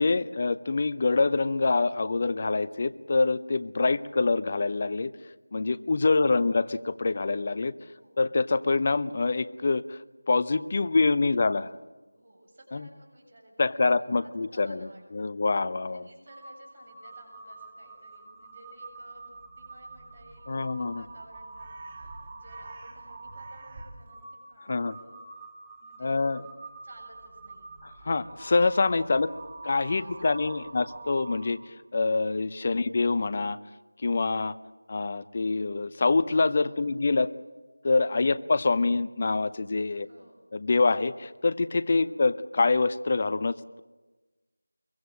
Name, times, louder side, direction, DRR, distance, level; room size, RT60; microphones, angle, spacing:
voice 1, 0.0-5.1 5.5-7.7 8.2-11.7 12.7-12.9 13.6-16.1 20.5-21.0 24.7-25.0 26.0-26.4 27.8-29.3 29.6-33.6 34.0-34.5 34.9-37.3 37.8-40.1 40.5-43.8, left 3 dB, 30° left, 17 dB, 0.7 m, -25 dB
voice 2, 3.8-4.3 7.9-8.2 10.7-11.6 12.1-15.4 15.9-25.2 25.8-26.2 26.8-27.7 29.0-29.4 29.9-30.7 32.6-33.0 36.6-37.0 38.1-38.4 39.9-40.3 41.9-42.2, right 1 dB, 40° right, 1 dB, 7.3 m, -55 dB
Crow, 16.3-31.8, right 3 dB, 25° right, 2.7 m, -46 dB
23.5 x 23.0 x 7.6 m, 1.3 s
figure-of-eight pair, 170°, 0 cm